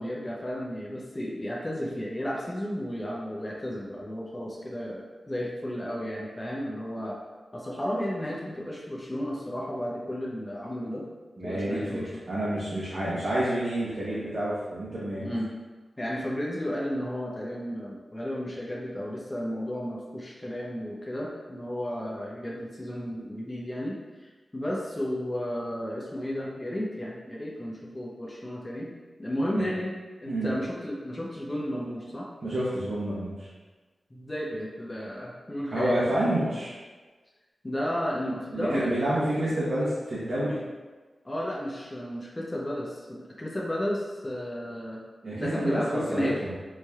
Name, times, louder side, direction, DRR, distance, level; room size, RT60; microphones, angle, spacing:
voice 1, 0.0-7.2 7.5-11.1 11.4-12.1 15.2-15.5 16.0-28.9 29.2-29.9 30.2-32.3 34.1-36.0 37.6-39.2 41.2-45.0 45.3-46.4, equal, 20° left, -4 dB, 0.6 m, -33 dB
voice 2, 11.4-12.0 12.3-15.3 29.6-29.7 30.3-30.5 32.4-33.5 35.7-36.7 38.5-40.6 45.2-45.8 46.1-46.5, right 1 dB, 45° right, -10 dB, 1.0 m, -28 dB
4.1 x 3.2 x 2.4 m, 1.3 s
wide cardioid pair, 110°, 0 cm